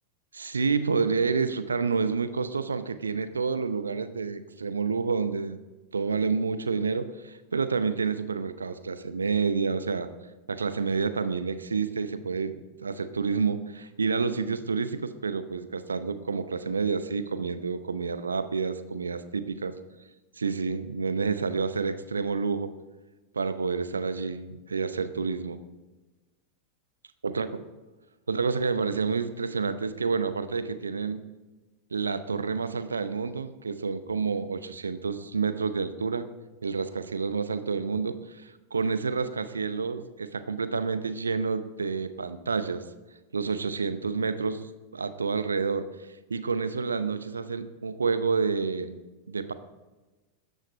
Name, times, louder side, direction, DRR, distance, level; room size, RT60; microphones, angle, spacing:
voice 1, 0.3-5.6 5.9-10.1 10.5-19.7 20.4-22.7 23.3-25.6 27.2-27.5 28.3-31.2 31.9-36.3 36.6-42.8 43.3-44.6 44.9-48.9 49.3-49.5, right 5 dB, 75° right, 12 dB, 0.8 m, -29 dB
13.5 x 9.2 x 5.1 m, 1.2 s
figure-of-eight pair, 90°, 0 cm